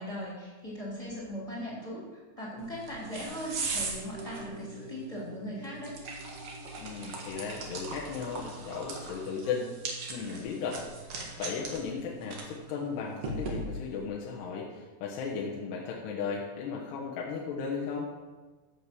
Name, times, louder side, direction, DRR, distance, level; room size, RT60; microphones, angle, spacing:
voice 1, 0.0-5.9, equal, 10° left, -5 dB, 2.5 m, -39 dB
sound 1, 2.6-14.1, right 3 dB, 50° right, 2.0 m, -40 dB
sound 2, 3.8-12.3 12.6-12.7, equal, 80° right, 3.6 m, -52 dB
voice 2, 6.8-9.7 10.1-18.1, left 5 dB, 75° left, -3 dB, 3.3 m, -36 dB
11.5 x 7.3 x 6.2 m, 1.3 s
omnidirectional pair, 4.9 m